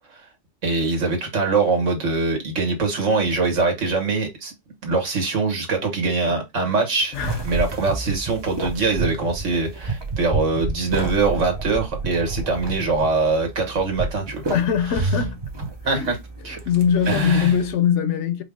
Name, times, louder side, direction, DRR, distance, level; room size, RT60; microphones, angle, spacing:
voice 1, 0.6-4.5 4.8-7.1 7.4-14.4 15.0-15.1 15.8-16.2 16.4-16.6 17.1-17.5, right 3 dB, 75° right, 1.6 m, -23 dB
sound 1, 7.1-17.7, right 3 dB, 25° right, 0.6 m, -30 dB
voice 2, 14.5-15.4 15.9-16.1 16.7-18.4, left 8 dB, 75° left, 1.0 m, -21 dB
4.6 x 2.0 x 3.5 m
omnidirectional pair, 1.3 m